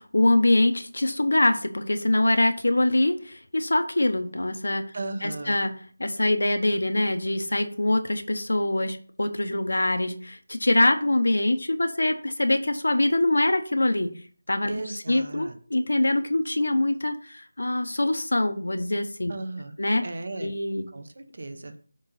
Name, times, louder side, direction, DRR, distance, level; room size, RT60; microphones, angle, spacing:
voice 1, 0.0-4.9 5.2-5.7 6.0-14.1 14.5-14.8 15.1-19.3 19.8-20.0 20.4-20.9, left 1 dB, 85° left, 8 dB, 1.1 m, -24 dB
voice 2, 4.9-5.6 14.7-15.6 19.3-19.8 20.0-20.5 20.9-21.8, right 2 dB, 40° right, 8 dB, 0.8 m, -35 dB
6.6 x 3.9 x 5.7 m, 0.43 s
figure-of-eight pair, 180°, 0 cm